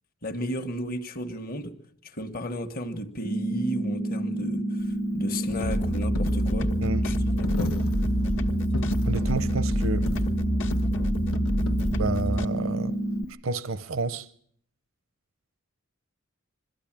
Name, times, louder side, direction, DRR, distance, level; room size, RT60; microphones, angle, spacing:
voice 1, 0.2-1.7 2.0-6.7 7.0-7.7, equal, 45° left, 1.3 m, -34 dB
sound 1, 3.2-13.2, right 1 dB, 20° left, 0.8 m, -29 dB
Coin (dropping), 4.8-13.3, left 3 dB, 90° left, 1.1 m, -38 dB
sound 2, 5.4-12.4, equal, 65° left, 1.4 m, -27 dB
voice 2, 9.1-10.1 11.9-13.0 13.4-14.3, right 3 dB, 70° right, 0.7 m, -30 dB
22.0 x 14.5 x 8.8 m
head